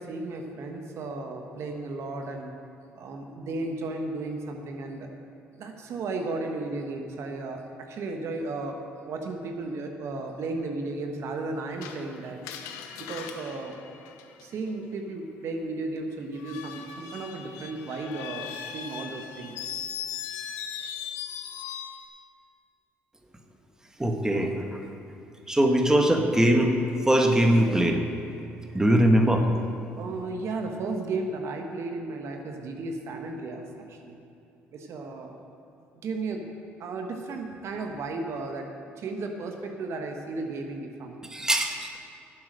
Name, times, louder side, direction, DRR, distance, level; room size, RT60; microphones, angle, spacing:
voice 1, 0.0-2.5 2.9-5.1 5.6-8.8 9.1-12.4 13.0-13.7 14.4-19.6 20.7-21.0 30.0-34.2 34.7-35.4 36.0-36.5 36.8-38.7 39.0-41.2, right 3 dB, 60° right, 3 dB, 1.3 m, -34 dB
Screech, 11.8-14.7 16.3-22.1, left 8 dB, 80° left, 0.9 m, -39 dB
voice 2, 24.0-24.5 25.5-26.7 27.1-28.0 28.7-29.4 41.3-41.9, right 1 dB, 10° right, 3 dB, 1.5 m, -21 dB
10.5 x 7.6 x 7.6 m, 2.7 s
supercardioid pair, 65°, 5 cm